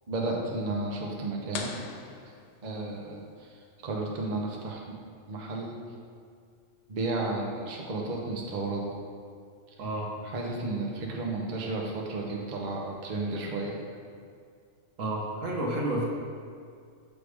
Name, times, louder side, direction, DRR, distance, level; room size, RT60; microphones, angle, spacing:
voice 1, 0.1-1.7 2.6-4.8 5.3-5.8 6.9-8.9 10.3-13.8, right 2 dB, 40° right, -1 dB, 0.7 m, -33 dB
sound 1, 1.5-3.2, left 5 dB, 65° left, 0.8 m, -41 dB
voice 2, 9.8-10.1 15.0-16.0, right 1 dB, 70° right, -2 dB, 1.4 m, -30 dB
6.5 x 3.6 x 4.7 m, 2.3 s
omnidirectional pair, 1.4 m